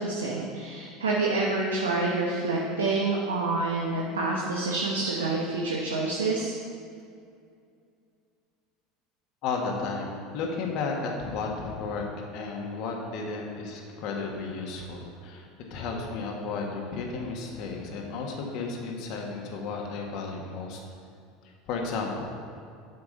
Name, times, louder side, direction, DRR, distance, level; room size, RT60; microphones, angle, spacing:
voice 1, 0.0-6.5, right 3 dB, 85° right, -3 dB, 1.1 m, -27 dB
voice 2, 9.4-20.8 21.4-22.2, left 4 dB, 55° left, 1 dB, 1.6 m, -33 dB
8.1 x 5.7 x 6.7 m, 2.4 s
hypercardioid pair, 75°, 0 cm